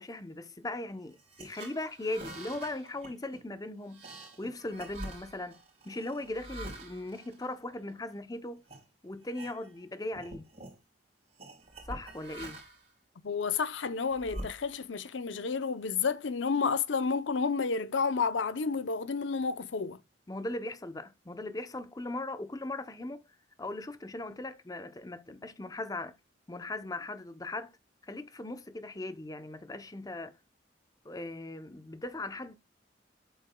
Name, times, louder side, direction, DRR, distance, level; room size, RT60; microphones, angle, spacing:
voice 1, 0.0-8.6 9.0-10.5 11.9-12.6 20.3-23.2 23.6-26.2 26.5-27.8 28.0-30.4 31.0-32.5, left 2 dB, 20° left, 0.6 m, -39 dB
sound 1, 1.1-8.1 8.6-8.8 9.2-9.9 10.1-10.8 11.4-12.9 13.5-15.0, right 1 dB, 35° right, 4.2 m, -46 dB
voice 2, 13.2-20.0, left 5 dB, 90° left, 0.6 m, -30 dB
8.4 x 8.0 x 2.2 m
head